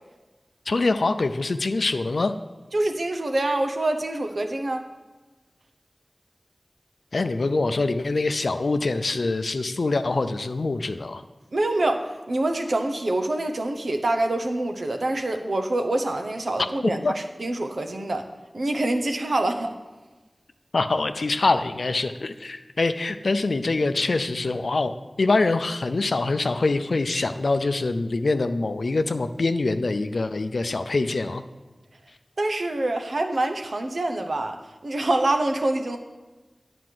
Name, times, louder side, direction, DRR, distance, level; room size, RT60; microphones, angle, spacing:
voice 1, 0.7-2.3 7.1-11.2 16.8-17.1 20.7-31.4, left 3 dB, 90° left, 9 dB, 0.4 m, -24 dB
voice 2, 2.7-4.8 11.5-18.3 18.5-19.7 32.4-36.0, right 2 dB, 85° right, 5 dB, 0.8 m, -26 dB
9.5 x 5.0 x 7.6 m, 1.2 s
wide cardioid pair, 50°, 0 cm